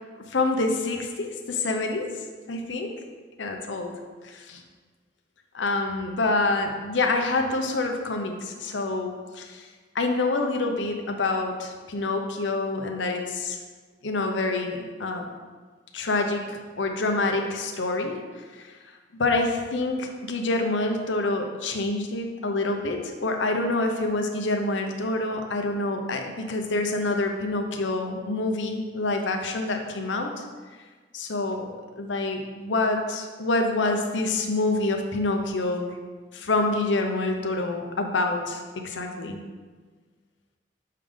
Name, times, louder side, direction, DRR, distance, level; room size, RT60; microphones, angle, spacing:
voice 1, 0.3-2.1 2.5-3.0 3.4-4.6 5.5-9.7 9.9-13.6 14.0-15.3 15.9-18.7 19.2-30.4 31.1-31.7 32.0-36.0 36.3-39.4, left 2 dB, 85° left, 4 dB, 0.7 m, -27 dB
6.6 x 5.1 x 3.7 m, 1.4 s
head